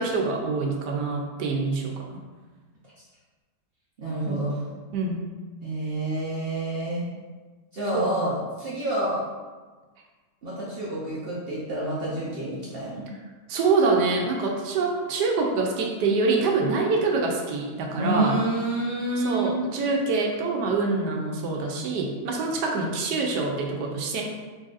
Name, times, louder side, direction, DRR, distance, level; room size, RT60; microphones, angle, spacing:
voice 1, 0.0-2.2 4.3-4.4 4.9-5.2 7.9-8.3 13.5-18.4 19.2-24.2, right 3 dB, 85° right, 0 dB, 1.2 m, -25 dB
voice 2, 4.0-4.6 5.6-7.1 7.7-9.2 10.4-13.1 18.0-19.6, right 2 dB, 55° right, -7 dB, 0.6 m, -28 dB
4.0 x 3.1 x 2.5 m, 1.3 s
omnidirectional pair, 1.8 m